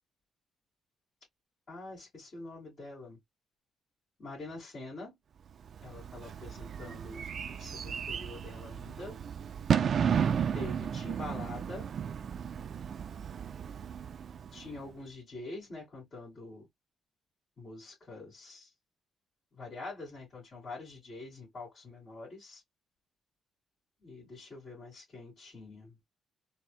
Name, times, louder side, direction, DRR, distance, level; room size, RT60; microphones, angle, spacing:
voice 1, 1.7-3.2 4.2-5.2 5.8-7.2 7.5-9.2 10.5-12.0 14.5-16.7 17.6-18.7 19.5-22.6 24.0-26.0, left 2 dB, 45° left, 2.2 m, -45 dB
Bird / Fireworks, 5.7-14.9, right 7 dB, 55° right, 0.3 m, -34 dB
4.0 x 2.1 x 2.3 m
cardioid pair, 90°, 0 cm